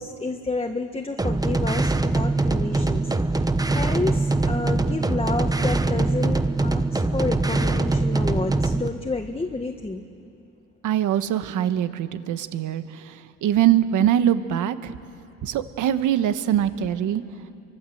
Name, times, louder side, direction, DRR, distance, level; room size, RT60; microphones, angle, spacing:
voice 1, 0.0-3.0 3.4-10.1, left 3 dB, 20° left, 4 dB, 1.6 m, -30 dB
sound 1, 1.2-8.9, right 2 dB, 10° right, 1.1 m, -23 dB
voice 2, 10.8-15.0 15.4-17.2, right 11 dB, 85° right, 11 dB, 1.3 m, -23 dB
29.0 x 24.5 x 7.9 m, 2.6 s
cardioid pair, 90°, 30 cm